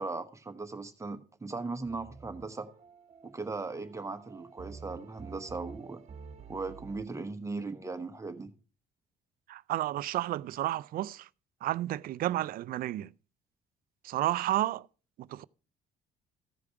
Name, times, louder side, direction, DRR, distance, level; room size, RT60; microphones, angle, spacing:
voice 1, 0.0-2.7 3.2-6.0 6.5-8.5, right 3 dB, 15° right, 1.0 m, -38 dB
sound 1, 1.8-7.0, right 5 dB, 40° right, 1.3 m, -50 dB
voice 2, 9.5-11.3 11.6-13.1 14.0-14.9 15.2-15.4, right 14 dB, 60° right, 0.4 m, -31 dB
14.5 x 5.0 x 4.7 m
cardioid pair, 110°, 17 cm